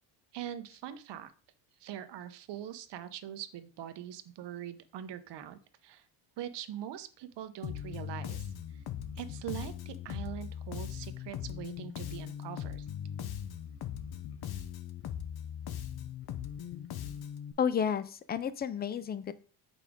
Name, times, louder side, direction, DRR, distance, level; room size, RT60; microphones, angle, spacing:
voice 1, 0.3-1.3 1.8-6.0 6.4-8.5 8.7-8.8 9.2-12.9, right 11 dB, 55° right, 11 dB, 0.9 m, -42 dB
Bass guitar, 7.6-17.5, left 9 dB, 50° left, 0.8 m, -40 dB
voice 2, 17.6-19.3, left 7 dB, 25° left, 15 dB, 0.3 m, -31 dB
6.7 x 5.0 x 3.6 m, 0.40 s
cardioid pair, 105°, 49 cm